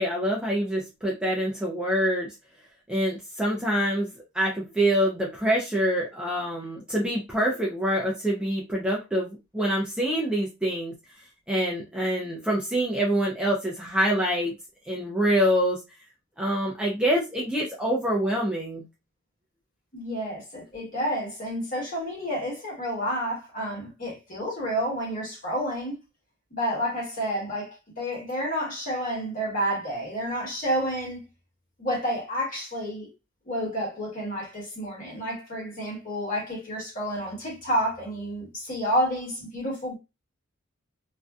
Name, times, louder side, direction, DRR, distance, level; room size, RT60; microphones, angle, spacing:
voice 1, 0.0-2.3 2.9-4.1 4.3-10.9 11.5-14.5 14.9-15.8 16.4-18.8, equal, 5° right, 0.4 m, -25 dB
voice 2, 19.9-25.9 26.5-31.3 31.8-33.1 33.5-40.0, equal, 40° left, 1.3 m, -30 dB
2.6 x 2.2 x 2.2 m
head